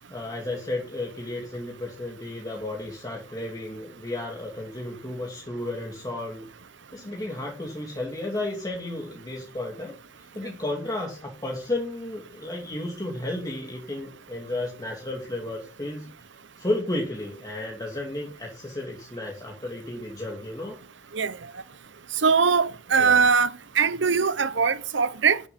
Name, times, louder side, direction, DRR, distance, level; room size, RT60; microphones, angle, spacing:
voice 1, 0.1-6.5 6.9-16.1 16.6-20.8 22.9-23.2, left 2 dB, 20° left, 2.8 m, -33 dB
voice 2, 22.2-25.4, right 5 dB, 70° right, 0.9 m, -21 dB
13.0 x 7.2 x 9.9 m
head